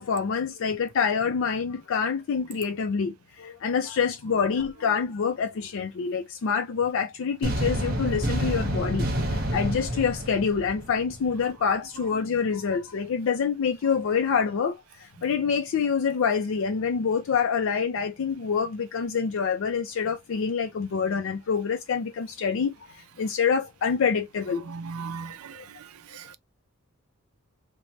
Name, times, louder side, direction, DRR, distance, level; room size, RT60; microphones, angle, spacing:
voice 1, 0.0-24.7 25.5-25.7, left 6 dB, 65° left, 0.4 m, -26 dB
sound 1, 7.4-11.4, equal, 45° right, 0.9 m, -28 dB
voice 2, 24.7-25.6 26.1-26.3, right 5 dB, 90° right, 0.4 m, -37 dB
3.1 x 2.1 x 2.6 m
head